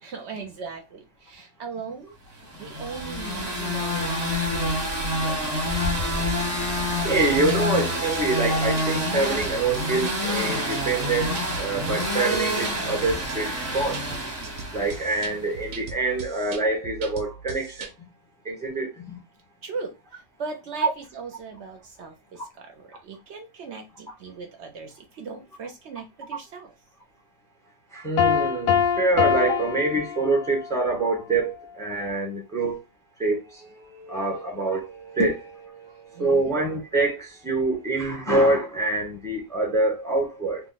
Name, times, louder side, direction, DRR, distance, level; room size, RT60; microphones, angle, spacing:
voice 1, 0.0-4.8 5.2-5.6 19.6-19.9 20.4-26.7 36.1-36.4, right 5 dB, 65° right, 0.8 m, -38 dB
sound 1, 2.5-15.4, left 1 dB, 35° right, 1.0 m, -27 dB
voice 2, 6.9-14.0 14.7-17.9 18.4-19.2 20.8-20.9 27.9-32.8 33.2-40.6, right 2 dB, 5° left, 0.7 m, -25 dB
sound 2, 7.1-7.6 8.1-8.2 8.6-9.1 9.4-10.2 10.7-12.7 13.3-13.4 13.8-17.9, right 4 dB, 90° right, 1.0 m, -39 dB
Piano, 28.2-30.7, left 8 dB, 85° left, 1.0 m, -24 dB
2.8 x 2.1 x 3.8 m
omnidirectional pair, 1.4 m